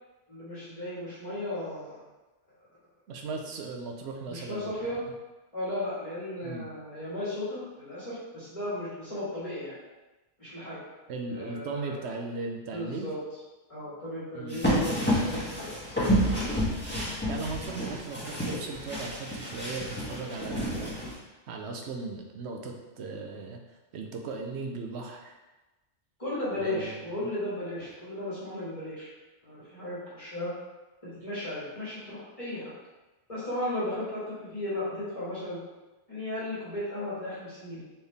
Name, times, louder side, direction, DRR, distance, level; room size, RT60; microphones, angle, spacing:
voice 1, 0.3-2.0 4.3-5.0 5.5-9.7 10.4-10.8 11.3-12.0 12.7-13.2 13.7-16.1 26.2-29.1 29.4-30.5 31.0-32.6 33.3-35.6 36.1-37.8, left 1 dB, 30° left, -12 dB, 1.7 m, -35 dB
voice 2, 3.1-4.9 6.4-6.7 11.1-13.1 14.3-14.6 17.3-25.4 26.5-27.0, right 3 dB, 65° right, 2 dB, 0.9 m, -38 dB
sound 1, 14.5-21.1, equal, 10° left, 1.3 m, -29 dB
4.3 x 3.5 x 3.4 m, 1.1 s
omnidirectional pair, 1.2 m